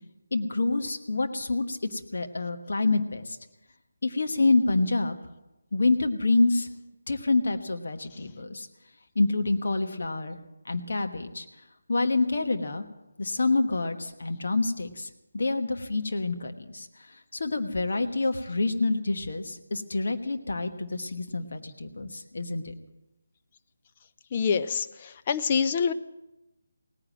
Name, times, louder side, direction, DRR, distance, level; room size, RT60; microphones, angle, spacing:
voice 1, 0.3-3.4 4.0-5.1 5.7-6.7 7.1-8.7 9.1-10.4 10.7-11.4 11.9-12.8 13.2-15.1 15.3-16.9 17.3-22.7, left 3 dB, 55° left, 6 dB, 1.3 m, -27 dB
voice 2, 24.3-25.9, left 6 dB, 30° left, 10 dB, 0.6 m, -26 dB
18.0 x 9.9 x 7.6 m, 0.98 s
figure-of-eight pair, 150°, 0 cm